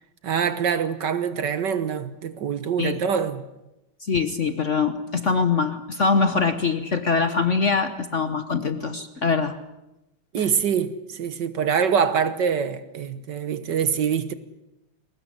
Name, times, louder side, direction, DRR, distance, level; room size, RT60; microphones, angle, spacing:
voice 1, 0.2-3.4 10.3-14.3, right 7 dB, 60° right, 1.7 m, -24 dB
voice 2, 4.0-9.6 10.4-10.5, left 5 dB, 45° left, 1.2 m, -23 dB
22.0 x 19.5 x 9.8 m
omnidirectional pair, 2.3 m